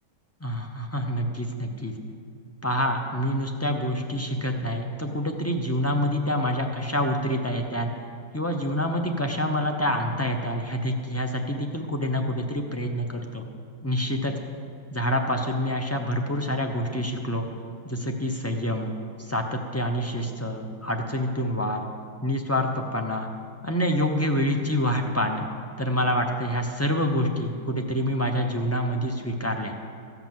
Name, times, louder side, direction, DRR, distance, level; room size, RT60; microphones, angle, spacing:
voice 1, 0.4-1.9 2.6-7.9 8.3-13.4 13.8-14.3 14.9-17.5 17.8-21.8 22.2-23.3 23.6-25.5 25.8-29.7, equal, 20° left, 3 dB, 0.4 m, -27 dB
14.5 x 5.9 x 7.6 m, 2.3 s
omnidirectional pair, 1.6 m